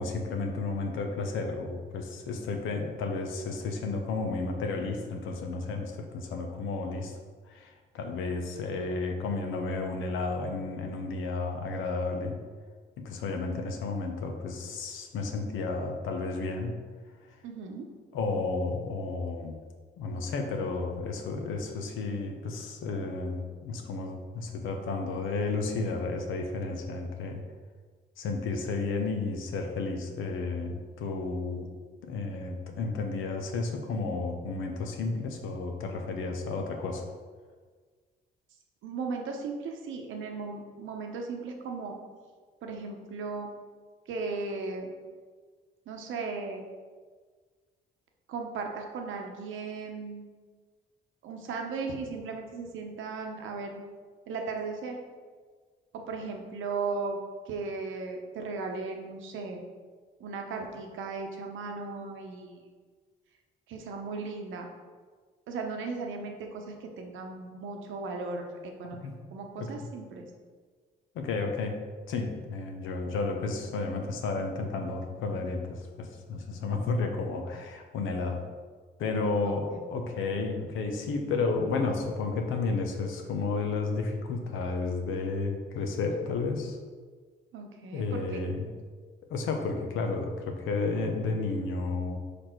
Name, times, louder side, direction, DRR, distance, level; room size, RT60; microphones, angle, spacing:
voice 1, 0.0-7.2 7.5-12.4 13.0-16.8 18.1-19.6 20.0-27.4 28.2-31.7 32.0-37.0 69.0-69.2 69.6-69.7 71.1-71.8 72.1-78.4 79.0-86.8 87.9-88.7 89.3-92.2, left 3 dB, 85° left, 3 dB, 0.8 m, -32 dB
voice 2, 17.4-17.9 38.8-42.0 42.6-43.5 44.1-44.9 45.9-46.6 48.3-50.3 51.2-53.7 54.3-55.0 56.1-57.2 57.5-59.6 60.2-62.7 63.7-64.7 65.5-70.3 79.4-79.8 87.5-88.4, right 4 dB, 80° right, 2 dB, 0.9 m, -36 dB
4.9 x 4.3 x 4.4 m, 1.5 s
cardioid pair, 90°, 20 cm